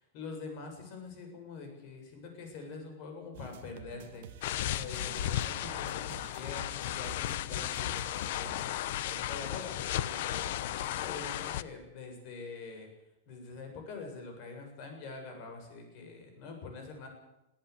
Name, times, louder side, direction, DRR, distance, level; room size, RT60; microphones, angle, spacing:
voice 1, 0.1-4.3 4.6-12.9 13.3-17.1, left 4 dB, 40° left, 4 dB, 7.1 m, -45 dB
sound 1, 3.3-8.7, right 9 dB, 55° right, 1.7 m, -52 dB
sound 2, 4.4-11.6, left 12 dB, 55° left, 1.0 m, -35 dB
24.0 x 15.0 x 8.3 m, 0.93 s
supercardioid pair, 175°, 0 cm